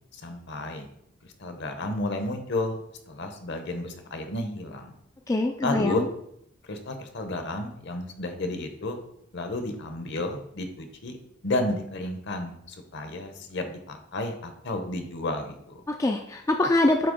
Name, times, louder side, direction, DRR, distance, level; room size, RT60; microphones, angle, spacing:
voice 1, 0.1-0.9 1.4-2.8 3.1-4.9 5.6-6.0 6.6-9.0 9.3-11.2 11.4-15.8, left 2 dB, 55° left, 6 dB, 0.9 m, -32 dB
voice 2, 5.3-6.0 15.9-17.1, left 2 dB, 15° left, 3 dB, 0.3 m, -24 dB
7.5 x 2.9 x 5.1 m, 0.73 s
head